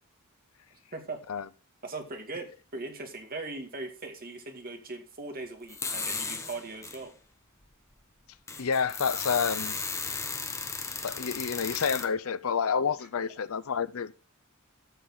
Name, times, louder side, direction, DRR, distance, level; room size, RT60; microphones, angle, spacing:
voice 1, 0.9-1.2 1.8-7.1, right 3 dB, 45° right, 2.3 m, -39 dB
sound 1, 5.7-7.0 7.6-7.7 8.2-12.1, left 4 dB, 15° left, 1.1 m, -35 dB
voice 2, 8.6-9.8 11.0-14.1, left 6 dB, 70° left, 0.6 m, -29 dB
13.5 x 7.3 x 3.9 m
head